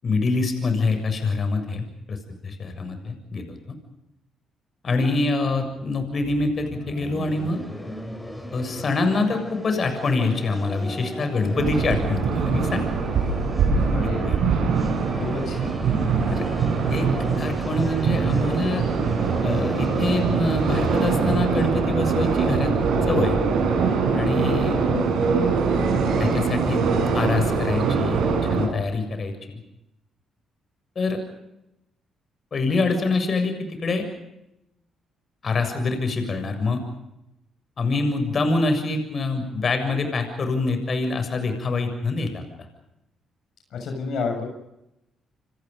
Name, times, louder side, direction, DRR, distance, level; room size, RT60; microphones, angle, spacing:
voice 1, 0.0-2.2 2.4-3.6 4.8-7.6 8.5-12.8 14.3-14.4 16.3-16.4 16.9-18.8 19.4-22.7 23.1-23.4 24.1-24.8 26.2-29.6 31.0-31.2 32.5-34.1 35.4-36.8 37.8-42.4, left 3 dB, 45° left, 7 dB, 7.1 m, -25 dB
sound 1, 5.3-23.0, left 1 dB, 10° left, 6.9 m, -37 dB
sound 2, 11.5-28.7, right 5 dB, 75° right, 7.6 m, -23 dB
voice 2, 13.8-14.4 15.2-15.7 24.9-25.1 43.7-44.4, left 4 dB, 70° left, 4 dB, 6.7 m, -30 dB
28.5 x 26.0 x 5.4 m, 0.87 s
cardioid pair, 90°, 0 cm